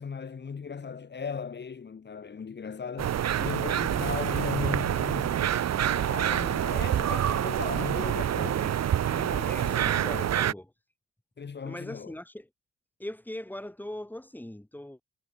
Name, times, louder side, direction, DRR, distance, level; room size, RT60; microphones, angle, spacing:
voice 1, 0.0-10.1 11.4-12.1, left 6 dB, 35° left, 2.4 m, -37 dB
sound 1, 3.0-10.5, right 10 dB, 60° right, 1.7 m, -27 dB
voice 2, 9.4-10.7 11.6-12.5 13.0-15.0, left 1 dB, 5° left, 6.7 m, -40 dB
cardioid pair, 90°, 30 cm